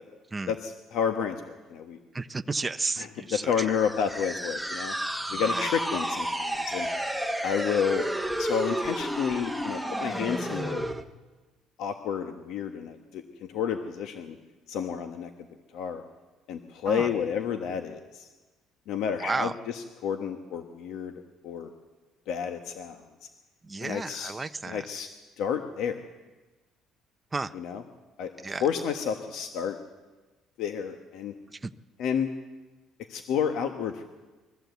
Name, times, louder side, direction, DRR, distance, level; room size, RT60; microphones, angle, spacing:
voice 1, 0.5-2.0 3.0-4.9 5.3-6.9 7.4-8.0 8.4-10.9 11.8-14.4 14.7-15.3 15.7-16.0 16.5-18.3 18.9-21.1 21.4-21.7 22.3-23.0 23.8-24.3 24.7-25.1 25.4-26.0 27.5-27.8 28.2-28.3 28.6-29.8 30.6-31.3 32.0-32.3 33.1-34.0, left 7 dB, 70° left, 6 dB, 1.3 m, -30 dB
voice 2, 2.1-3.8 5.3-5.7 16.9-17.1 19.2-19.5 23.6-24.9 27.3-27.5 28.4-28.6 31.6-31.7, right 3 dB, 15° right, 9 dB, 0.5 m, -32 dB
sound 1, 3.6-11.0, right 1 dB, ahead, 1.0 m, -31 dB
22.0 x 15.0 x 8.1 m, 1.2 s
cardioid pair, 145°, 0 cm